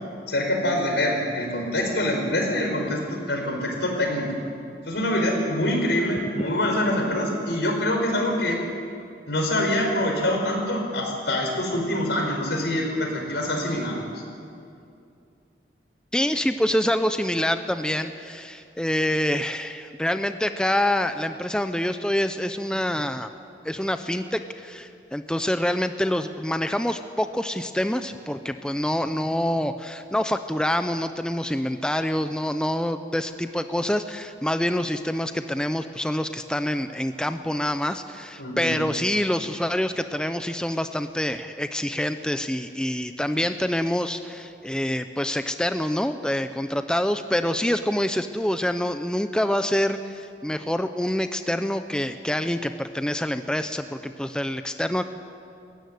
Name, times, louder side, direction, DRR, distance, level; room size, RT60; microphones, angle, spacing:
voice 1, 0.3-4.3 4.9-8.6 9.3-14.0 38.4-38.7, left 1 dB, 85° left, 2 dB, 5.0 m, -25 dB
voice 2, 16.1-23.3 23.6-55.0, left 1 dB, 5° left, 9 dB, 0.6 m, -26 dB
21.0 x 16.0 x 9.6 m, 2.5 s
head